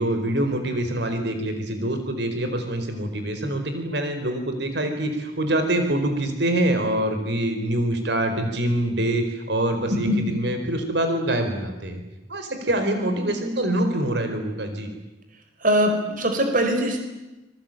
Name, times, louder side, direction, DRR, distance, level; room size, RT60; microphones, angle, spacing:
voice 1, 0.0-12.0 12.3-14.9, right 1 dB, 65° right, 6 dB, 4.6 m, -25 dB
voice 2, 15.6-17.0, equal, 45° right, 5 dB, 4.5 m, -22 dB
27.0 x 23.0 x 9.2 m, 1.0 s
head